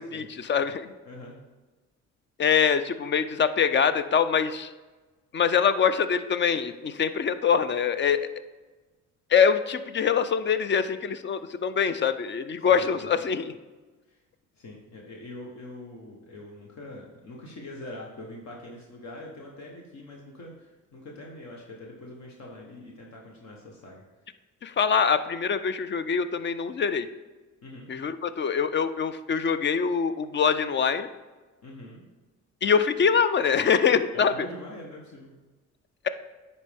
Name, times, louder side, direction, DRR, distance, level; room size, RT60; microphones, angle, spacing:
voice 1, 0.0-0.9 2.4-4.7 5.3-8.2 9.3-13.5 24.6-27.1 27.9-31.1 32.6-34.3, left 7 dB, 40° left, 12 dB, 0.4 m, -24 dB
voice 2, 1.0-1.4 12.7-12.9 14.1-14.2 14.5-24.0 27.6-27.9 31.6-32.0 34.1-35.3, left 1 dB, 65° left, -1 dB, 1.2 m, -43 dB
9.8 x 4.2 x 3.5 m, 1.2 s
cardioid pair, 90°, 30 cm